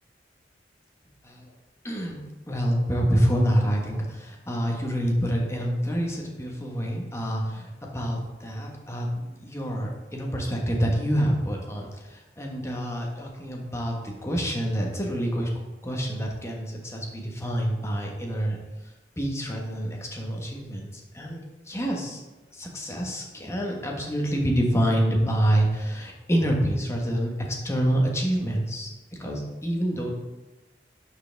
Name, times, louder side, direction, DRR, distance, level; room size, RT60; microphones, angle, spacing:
voice 1, 1.8-15.5 15.8-18.6 19.2-20.9 21.1-21.4 21.7-22.2 22.5-27.3 27.6-28.9 29.2-30.1, equal, 15° left, -1 dB, 1.3 m, -27 dB
11.0 x 4.8 x 3.4 m, 1.1 s
head